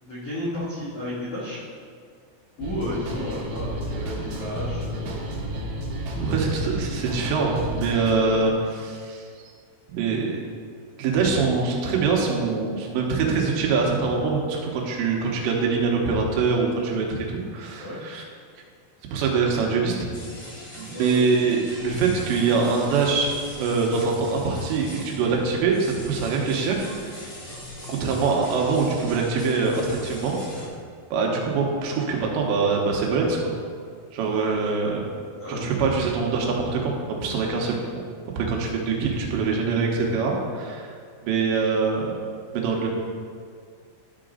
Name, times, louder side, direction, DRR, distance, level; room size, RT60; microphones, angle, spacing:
voice 1, 0.0-1.6 2.6-5.3 6.1-6.5 17.8-18.0 20.9-21.3 35.4-35.7, left 1 dB, 80° left, -8 dB, 1.3 m, -33 dB
sound 1, 2.6-8.6, left 3 dB, 30° right, 0.8 m, -42 dB
sound 2, 2.6-8.1, right 2 dB, 60° right, 2.5 m, -32 dB
voice 2, 6.2-9.5 9.9-10.4 11.0-18.2 19.1-20.0 20.8-23.3 23.6-27.3 27.9-30.4 31.1-33.4 34.1-35.0 35.5-38.0 38.4-40.9 41.2-42.1 42.5-42.9, right 4 dB, 85° right, -1 dB, 3.2 m, -24 dB
sound 3, 20.1-30.7, left 1 dB, 55° left, 4.0 m, -40 dB
12.0 x 5.0 x 3.8 m, 2.1 s
omnidirectional pair, 5.1 m